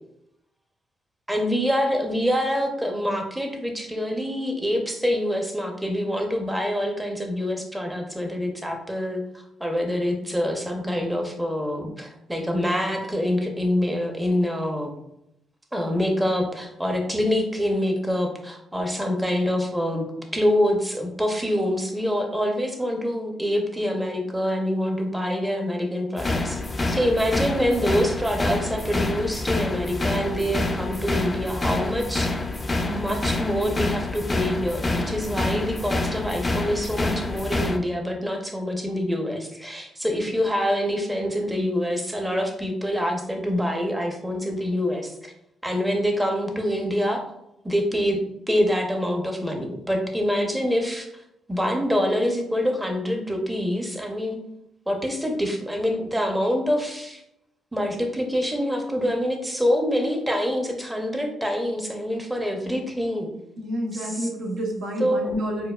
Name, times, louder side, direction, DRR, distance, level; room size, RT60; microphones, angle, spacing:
voice 1, 1.3-9.2 9.6-14.9 15.7-20.0 20.3-26.6 26.9-32.4 32.8-45.3 45.6-47.2 47.6-48.2 48.5-51.1 51.5-54.4 54.9-57.2 57.7-63.3 63.9-64.3 65.0-65.3, equal, 10° right, 3 dB, 0.7 m, -25 dB
sound 1, 26.2-37.8, left 2 dB, 25° left, 0.4 m, -27 dB
voice 2, 63.6-65.7, equal, 70° right, 0 dB, 0.9 m, -29 dB
4.5 x 2.3 x 2.3 m, 0.81 s
cardioid pair, 90°, 0 cm